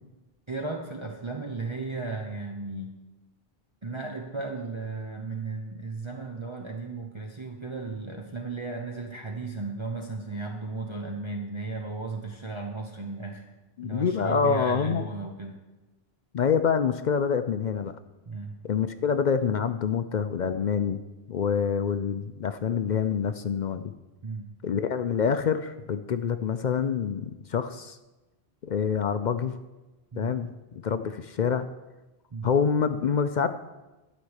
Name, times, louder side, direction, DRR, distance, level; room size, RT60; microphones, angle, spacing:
voice 1, 0.5-3.0 3.8-13.5 13.8-15.6 18.3-18.5 24.2-24.5 30.1-30.4 32.3-32.5, right 3 dB, 30° right, 1 dB, 0.9 m, -35 dB
voice 2, 13.8-15.1 16.3-18.0 18.6-21.0 21.3-23.9 24.6-28.0 28.6-29.6 30.2-31.7 32.4-33.5, left 6 dB, 55° left, 10 dB, 0.6 m, -26 dB
12.0 x 5.3 x 8.0 m, 1.1 s
omnidirectional pair, 1.1 m